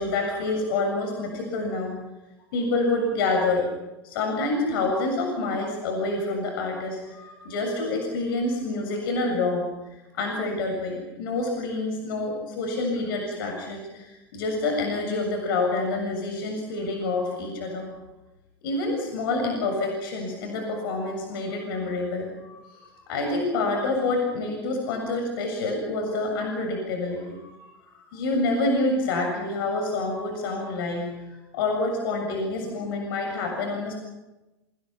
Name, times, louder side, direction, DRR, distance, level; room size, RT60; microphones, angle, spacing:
voice 1, 0.0-2.0 2.5-3.6 4.0-17.9 18.6-31.3 31.5-33.9, left 2 dB, 70° left, 3 dB, 7.4 m, -27 dB
29.0 x 27.0 x 5.9 m, 1.0 s
hypercardioid pair, 85°, 12 cm